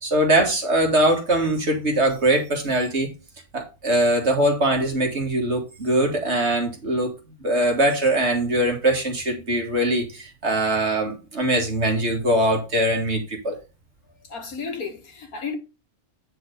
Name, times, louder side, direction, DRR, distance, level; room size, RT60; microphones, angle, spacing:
voice 1, 0.0-3.1 3.5-7.1 7.4-13.6, right 1 dB, 45° right, 2.4 m, -22 dB
voice 2, 14.3-15.6, left 5 dB, 70° left, 2.3 m, -32 dB
9.8 x 4.5 x 5.2 m
omnidirectional pair, 1.6 m